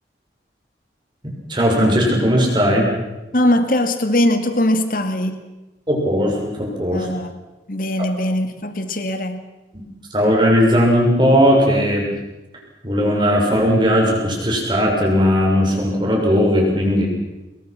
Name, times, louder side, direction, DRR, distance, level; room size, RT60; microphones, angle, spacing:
voice 1, 1.5-2.9 5.9-7.1 9.7-9.8 10.1-12.1 12.8-17.1, equal, 25° right, -1 dB, 6.5 m, -17 dB
voice 2, 3.3-5.4 6.9-7.4 7.7-9.5, left 1 dB, 50° left, 8 dB, 2.3 m, -20 dB
27.5 x 22.0 x 6.1 m, 1.0 s
head